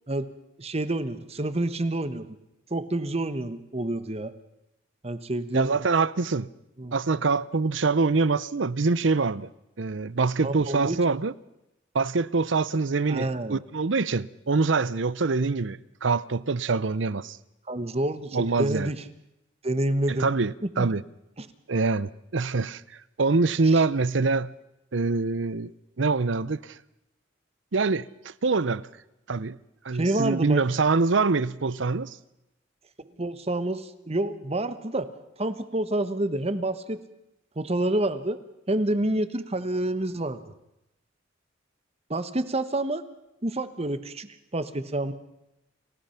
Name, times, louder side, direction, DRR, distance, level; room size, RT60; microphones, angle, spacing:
voice 1, 0.6-2.3 2.7-4.3 5.0-5.7 6.8-7.0 10.4-11.1 13.1-13.6 17.7-19.0 19.6-20.3 20.8-20.9 21.4-21.5 23.6-23.8 29.9-30.6 33.0-35.1 35.4-37.0 37.6-38.4 38.7-40.4 42.1-43.0 43.4-45.1, right 1 dB, 30° right, 1.2 m, -28 dB
voice 2, 5.5-6.5 6.9-9.5 9.8-11.3 11.9-17.4 18.3-18.9 20.1-21.0 21.7-22.8 23.2-24.5 24.9-25.7 26.0-26.8 27.7-28.9 29.3-29.6 29.8-32.2, right 4 dB, 70° right, 0.7 m, -25 dB
29.0 x 16.5 x 5.8 m
head